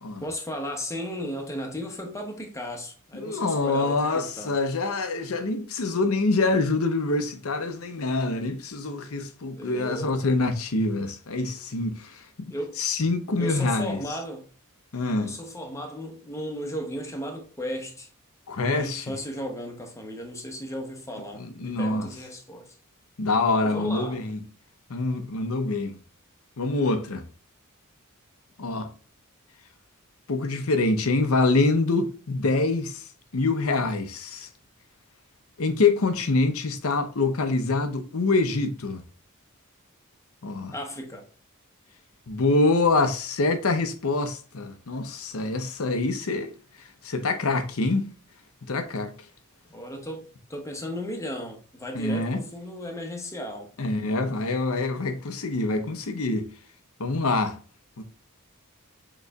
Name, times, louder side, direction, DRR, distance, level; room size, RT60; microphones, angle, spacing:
voice 1, 0.2-4.6 9.6-10.3 12.5-12.8 13.4-14.5 15.2-18.1 18.7-22.8 23.6-24.2 40.7-41.3 49.7-53.7, equal, 15° left, 0.9 m, -35 dB
voice 2, 3.1-12.2 12.8-14.0 14.9-15.4 18.5-19.1 21.4-22.1 23.2-24.4 24.9-26.0 26.6-27.3 28.6-28.9 30.3-33.0 33.3-34.5 35.6-39.0 40.4-40.7 42.3-46.5 47.0-48.1 48.7-49.1 51.9-52.4 53.8-56.5 57.0-57.6 58.0-58.1, left 3 dB, 70° left, 0.7 m, -25 dB
6.5 x 3.1 x 2.3 m
head